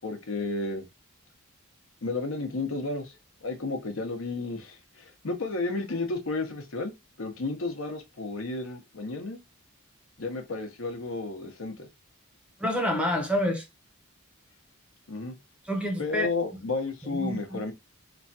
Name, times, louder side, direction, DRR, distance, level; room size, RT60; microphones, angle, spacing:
voice 1, 0.0-0.8 2.0-3.2 3.4-6.9 7.2-9.4 10.2-11.9 15.1-15.4 16.0-17.7, left 3 dB, 65° left, 0.8 m, -32 dB
voice 2, 12.6-13.7 15.6-16.3 17.1-17.6, equal, 5° right, 0.6 m, -28 dB
3.1 x 2.3 x 2.6 m
head